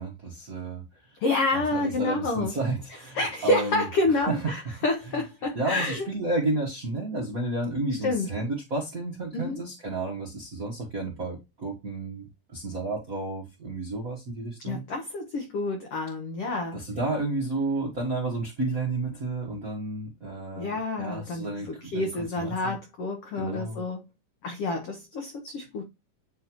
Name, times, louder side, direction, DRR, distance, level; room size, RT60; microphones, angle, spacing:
voice 1, 0.0-1.2 1.5-4.8 5.1-5.2 5.5-14.8 16.7-22.8 23.3-23.8, right 2 dB, 55° right, 0.9 m, -32 dB
voice 2, 1.2-2.5 3.1-6.1 8.0-8.3 9.3-9.6 14.6-16.8 20.6-24.0 24.4-25.9, left 2 dB, 80° left, 1.3 m, -28 dB
9.0 x 3.8 x 3.0 m
omnidirectional pair, 4.0 m